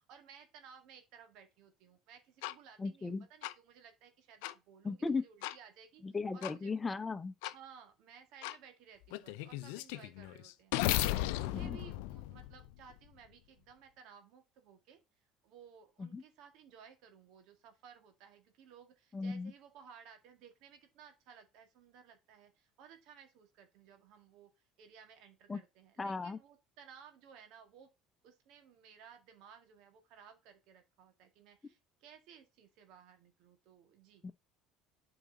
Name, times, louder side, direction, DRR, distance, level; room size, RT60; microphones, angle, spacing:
voice 1, 0.1-6.0 6.3-6.7 7.5-15.0 15.4-24.5 24.8-27.9 28.2-34.2, right 7 dB, 70° right, 1.9 m, -58 dB
sound 1, 2.4-2.5 3.4-3.5 4.4-4.5 5.4-5.6 6.4-6.5 7.4-7.5 8.4-8.6 9.1-13.0, left 16 dB, 75° left, 0.5 m, -36 dB
voice 2, 2.8-3.3 4.8-5.3 6.0-7.3 11.5-11.8 16.0-16.2 19.1-19.5 25.5-25.6 26.0-26.4 34.2-34.3, left 4 dB, 25° left, 0.9 m, -36 dB
7.8 x 5.0 x 3.9 m
hypercardioid pair, 70°, 0 cm